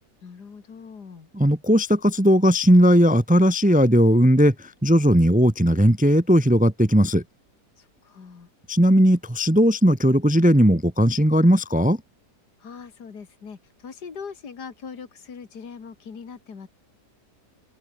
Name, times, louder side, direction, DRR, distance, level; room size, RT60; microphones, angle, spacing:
voice 1, 0.2-1.3 7.8-8.5 12.6-16.7, left 6 dB, 70° left, 2.8 m, -41 dB
voice 2, 1.3-7.2 8.7-12.0, equal, 10° right, 0.6 m, -17 dB
open air
omnidirectional pair, 1.8 m